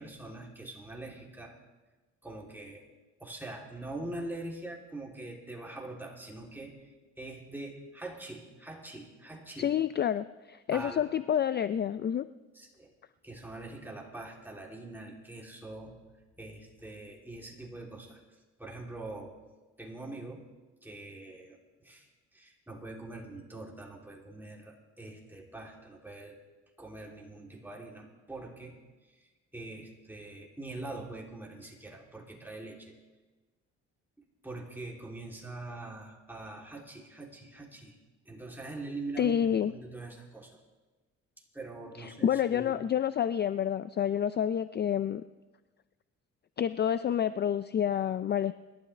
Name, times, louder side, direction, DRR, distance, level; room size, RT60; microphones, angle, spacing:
voice 1, 0.0-1.6 2.2-2.9 3.2-9.7 10.7-11.0 12.5-12.9 13.2-16.0 16.4-19.4 19.8-20.4 20.8-26.4 26.8-28.8 29.1-32.9 34.4-38.0 38.2-40.6 41.5-42.9, right 2 dB, 5° right, -2 dB, 3.0 m, -43 dB
voice 2, 9.6-12.3 39.2-39.7 42.0-45.2 46.6-48.5, left 9 dB, 35° left, 13 dB, 0.4 m, -29 dB
26.5 x 12.0 x 3.3 m, 1.2 s
cardioid pair, 90°, 30 cm